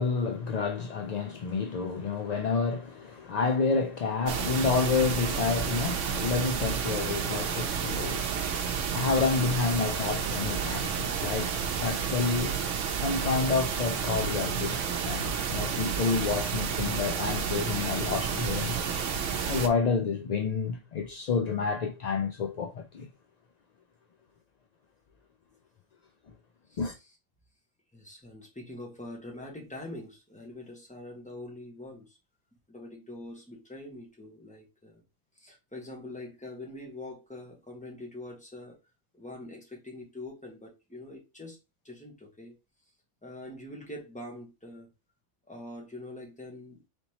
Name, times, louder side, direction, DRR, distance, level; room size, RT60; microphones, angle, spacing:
voice 1, 0.0-8.3 8.9-11.5 11.8-12.5 13.0-18.9 19.5-23.1 26.8-26.9, left 5 dB, 60° left, 0.4 m, -29 dB
sound 1, 4.3-19.7, right 7 dB, 85° right, 1.0 m, -31 dB
voice 2, 26.7-27.1 27.9-32.2 32.7-35.0 35.3-38.8 39.1-41.6 41.8-42.6 43.2-44.9 45.5-46.8, left 1 dB, 5° left, 1.3 m, -44 dB
4.0 x 3.4 x 2.9 m
omnidirectional pair, 1.2 m